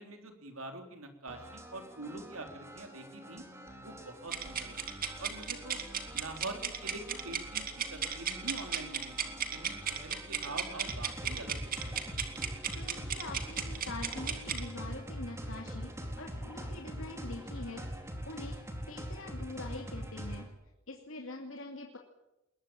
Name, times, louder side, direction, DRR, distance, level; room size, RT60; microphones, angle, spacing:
voice 1, 0.0-3.4 3.8-5.8 6.1-11.6 11.9-12.0, right 2 dB, 90° right, 5 dB, 3.7 m, -45 dB
sound 1, 1.3-20.5, equal, 15° right, 4.1 m, -44 dB
sound 2, 4.3-14.6, right 7 dB, 45° right, 2.8 m, -36 dB
voice 2, 12.7-18.6 18.9-20.5 20.9-22.0, left 2 dB, 70° left, 1 dB, 2.7 m, -44 dB
21.0 x 21.0 x 8.9 m, 0.91 s
head